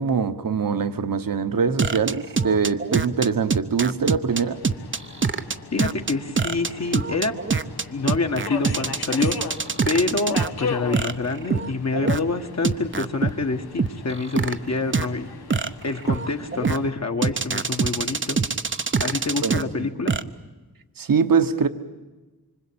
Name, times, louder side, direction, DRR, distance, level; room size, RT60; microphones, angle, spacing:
voice 1, 0.0-4.6 19.4-19.9 21.0-21.7, right 6 dB, 65° right, 1.3 m, -23 dB
sound 1, 1.8-10.5 10.9-12.2 12.6-13.3 13.8-14.5 14.9-15.1 15.5-16.8 17.2-19.6 20.1-20.2, right 4 dB, 30° right, 0.8 m, -23 dB
Subway metro underground, 4.3-16.9, left 5 dB, 85° left, 1.7 m, -38 dB
voice 2, 5.7-7.4 7.9-9.6 9.8-15.3 15.8-18.4 19.0-20.1, left 3 dB, 45° left, 1.7 m, -26 dB
26.0 x 25.0 x 8.8 m
wide cardioid pair, 135°, 37 cm